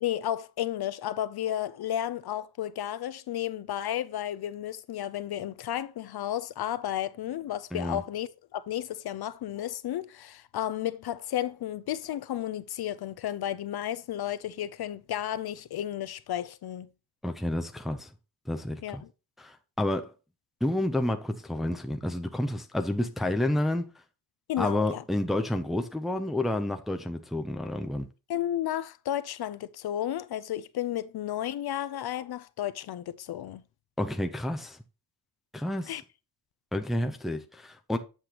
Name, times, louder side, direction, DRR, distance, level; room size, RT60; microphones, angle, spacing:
voice 1, 0.0-16.9 18.8-19.1 24.5-25.0 28.3-33.6 35.9-36.0, left 11 dB, 65° left, 0.5 m, -33 dB
voice 2, 7.7-8.0 17.2-18.1 18.5-19.0 19.4-20.1 20.6-23.9 24.6-28.1 34.0-34.8 35.5-36.0 36.7-38.0, left 1 dB, ahead, 0.5 m, -30 dB
7.8 x 6.7 x 2.9 m
wide cardioid pair, 180°, 42 cm